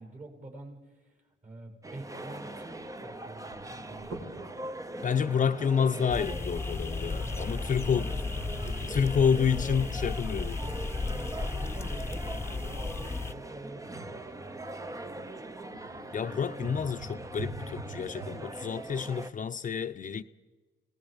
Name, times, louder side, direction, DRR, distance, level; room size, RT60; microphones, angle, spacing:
voice 1, 0.0-4.5 5.2-5.5 7.0-9.7 11.0-15.2, right 2 dB, 40° right, 7.1 m, -48 dB
sound 1, 1.8-19.3, right 2 dB, 15° right, 0.9 m, -42 dB
sound 2, 3.0-18.5, right 2 dB, 70° right, 5.0 m, -48 dB
voice 2, 5.0-8.1 8.9-10.6 16.1-20.2, left 7 dB, 40° left, 0.8 m, -29 dB
sound 3, 6.1-13.3, left 3 dB, 15° left, 1.0 m, -34 dB
29.5 x 19.0 x 5.2 m
cardioid pair, 90°, 20 cm